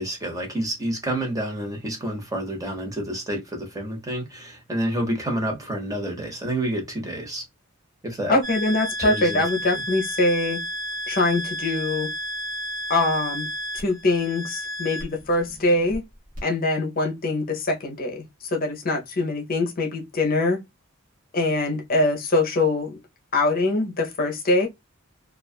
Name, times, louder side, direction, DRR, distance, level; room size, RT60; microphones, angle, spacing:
voice 1, 0.0-7.4 8.0-8.4 9.0-9.4 9.7-9.8, right 1 dB, 15° right, 0.9 m, -29 dB
voice 2, 8.3-10.6 11.1-12.1 12.9-13.5 13.7-16.0 16.4-20.6 21.3-23.0 23.3-24.7, left 2 dB, 45° left, 0.7 m, -23 dB
sound 1, 8.4-16.0 16.4-16.5, equal, 40° right, 1.1 m, -32 dB
2.4 x 2.3 x 2.3 m
head